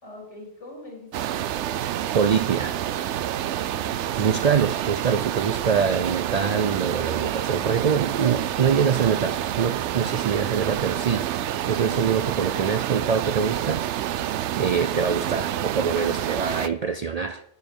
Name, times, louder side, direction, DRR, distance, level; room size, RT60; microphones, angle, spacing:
voice 1, 0.0-1.8 3.6-5.1 7.4-7.7, left 3 dB, 90° left, 4.1 m, -46 dB
sound 1, 1.1-16.7, right 11 dB, 80° right, 0.9 m, -28 dB
voice 2, 2.1-2.8 4.2-11.3 11.7-13.8 14.1-17.4, right 6 dB, 65° right, 0.4 m, -24 dB
11.0 x 9.0 x 5.3 m
omnidirectional pair, 1.2 m